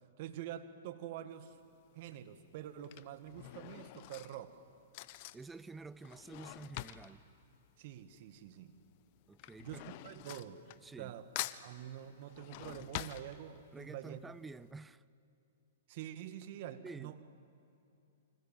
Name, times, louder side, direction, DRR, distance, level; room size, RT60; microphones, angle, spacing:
voice 1, 0.2-1.6 1.9-4.6 7.8-8.7 9.6-10.6 11.0-11.3 11.6-14.2 15.9-17.2, right 11 dB, 50° right, 10 dB, 1.9 m, -46 dB
Drawer open or close / Cutlery silverware, 1.4-1.7 2.6-8.5 8.7-11.1 11.4-13.9 14.3-14.4 14.6-14.7, left 16 dB, 45° left, 1.0 m, -46 dB
voice 2, 5.3-7.2 9.3-9.8 10.8-11.1 13.7-15.0 16.8-17.1, right 3 dB, 10° right, 19 dB, 0.6 m, -49 dB
30.0 x 25.5 x 7.6 m, 2.7 s
hypercardioid pair, 125°, 0 cm